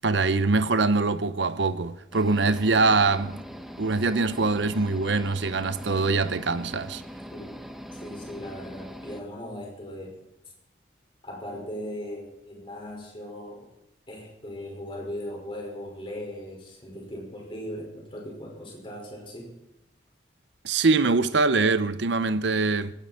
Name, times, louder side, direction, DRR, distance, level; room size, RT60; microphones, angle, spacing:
voice 1, 0.0-3.4 3.8-7.0 20.6-22.9, right 3 dB, 70° right, 0.8 m, -23 dB
sound 1, 2.1-9.2, equal, ahead, 1.2 m, -42 dB
voice 2, 7.9-10.1 11.2-13.7 14.1-19.5, equal, 30° left, 5.3 m, -38 dB
19.5 x 17.0 x 4.4 m
head